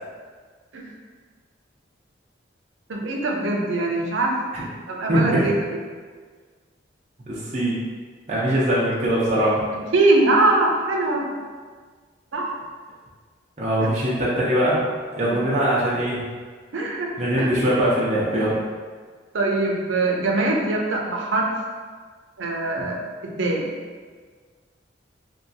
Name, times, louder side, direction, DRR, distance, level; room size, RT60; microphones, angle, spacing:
voice 1, 2.9-4.3 4.9-5.5 9.7-11.3 12.3-12.4 16.7-17.1 17.4-17.5 19.3-21.5 22.4-23.6, right 2 dB, 85° right, 0 dB, 0.5 m, -22 dB
voice 2, 5.1-5.5 7.3-7.8 8.3-9.6 13.6-14.8 15.2-16.3 17.2-18.6, right 1 dB, 35° right, -7 dB, 0.6 m, -22 dB
3.0 x 2.6 x 2.6 m, 1.6 s
head